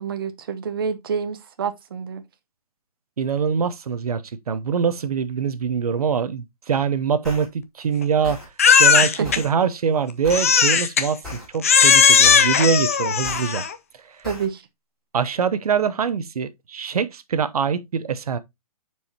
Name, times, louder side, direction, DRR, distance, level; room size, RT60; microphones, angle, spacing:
voice 1, 0.0-2.2 9.2-9.3 14.2-14.6, right 6 dB, 40° right, 0.7 m, -28 dB
voice 2, 3.2-8.4 8.8-11.2 11.5-13.6 14.1-14.2 15.1-18.4, right 6 dB, 75° right, 0.8 m, -23 dB
sound 1, 7.2-7.4 8.2-8.5 9.2-9.5 10.2-10.5 11.2-11.4 12.2-12.5 13.2-13.4 14.2-14.4, left 3 dB, ahead, 2.8 m, -35 dB
Crying sobbing, 8.6-9.4 10.3-11.1 11.6-13.7, left 6 dB, 25° left, 0.4 m, -16 dB
8.3 x 4.7 x 2.8 m
hypercardioid pair, 175°, 19 cm